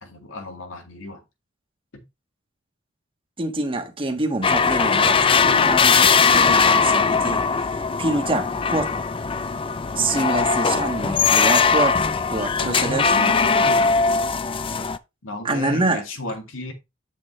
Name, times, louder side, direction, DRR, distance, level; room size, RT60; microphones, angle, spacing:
voice 1, 0.0-1.2 1.9-2.0 12.6-14.3 15.2-16.7, left 1 dB, 90° left, 2.1 m, -32 dB
voice 2, 3.4-7.4 7.7-8.9 9.9-12.0 12.3-13.3 15.4-16.0, right 2 dB, 25° right, 1.4 m, -26 dB
sound 1, 4.4-15.0, left 5 dB, 25° left, 0.4 m, -20 dB
8.2 x 6.6 x 3.1 m
head